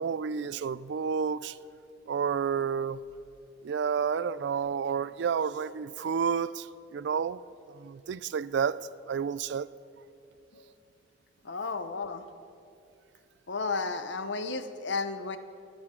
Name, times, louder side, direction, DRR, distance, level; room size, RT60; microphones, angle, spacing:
voice 1, 0.0-1.6 2.1-3.0 3.6-6.7 6.9-7.4 7.7-8.8 9.1-9.7, right 6 dB, 65° right, 0.3 m, -30 dB
voice 2, 11.4-12.2 13.5-15.4, left 4 dB, 70° left, 0.8 m, -33 dB
24.5 x 10.5 x 3.8 m
head